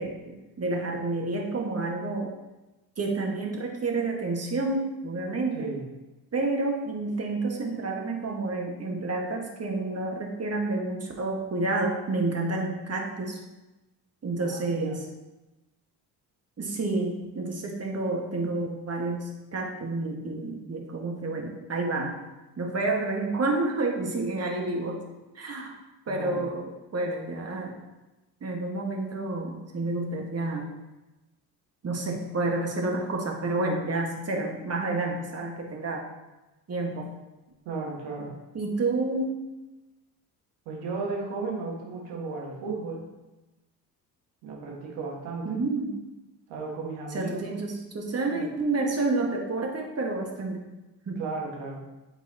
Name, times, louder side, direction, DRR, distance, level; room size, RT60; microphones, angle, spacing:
voice 1, 0.0-2.3 3.0-5.7 6.3-13.4 14.2-15.1 16.6-22.1 22.6-25.0 25.3-25.7 26.1-27.7 28.4-30.7 31.8-36.1 36.7-37.1 38.5-39.4 45.4-46.0 47.1-50.7 51.1-51.2, right 2 dB, 30° right, 1 dB, 1.4 m, -29 dB
voice 2, 5.5-5.9 14.4-15.0 26.1-26.4 37.6-38.3 40.6-43.0 44.4-45.6 46.5-47.6 48.3-48.4 51.2-51.8, right 3 dB, 70° right, -2 dB, 1.6 m, -35 dB
8.6 x 4.0 x 2.8 m, 1.1 s
hypercardioid pair, 50°, 50 cm